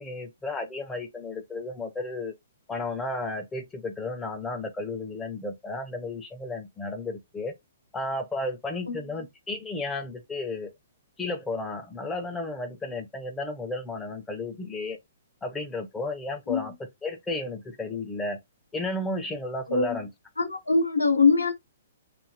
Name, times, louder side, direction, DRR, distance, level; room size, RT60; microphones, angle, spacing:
voice 1, 0.0-2.3 2.7-7.5 7.9-10.7 11.2-15.0 15.4-16.7 17.0-18.4 18.7-20.1, left 2 dB, 10° left, 0.5 m, -33 dB
voice 2, 19.7-20.1 20.4-21.5, left 4 dB, 85° left, 0.7 m, -23 dB
2.7 x 2.5 x 2.6 m
figure-of-eight pair, 120°, 0 cm